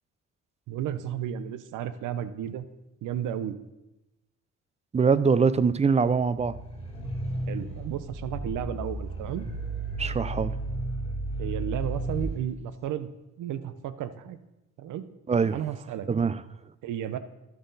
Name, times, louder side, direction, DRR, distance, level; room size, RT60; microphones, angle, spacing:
voice 1, 0.7-2.6 3.0-3.6 7.5-9.4 11.4-13.1 13.4-14.4 14.8-15.0 15.5-16.1 16.8-17.2, right 10 dB, 85° right, 12 dB, 0.8 m, -33 dB
voice 2, 4.9-6.6 10.0-10.5 15.3-15.6 16.1-16.4, right 5 dB, 20° right, 15 dB, 0.5 m, -23 dB
sound 1, 6.3-12.4, right 2 dB, 20° left, 3.5 m, -33 dB
12.0 x 7.7 x 4.1 m, 0.97 s
cardioid pair, 90°, 30 cm